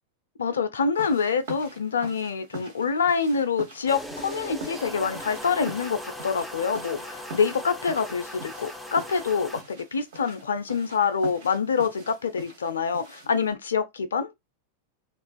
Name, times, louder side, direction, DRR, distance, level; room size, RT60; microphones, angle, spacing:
voice 1, 0.4-14.3, left 5 dB, 70° left, 0.4 m, -26 dB
sound 1, 0.9-13.5, right 2 dB, 55° right, 0.9 m, -44 dB
sound 2, 3.9-9.6, left 1 dB, ahead, 0.4 m, -39 dB
2.3 x 2.3 x 2.3 m
figure-of-eight pair, 90°, 0 cm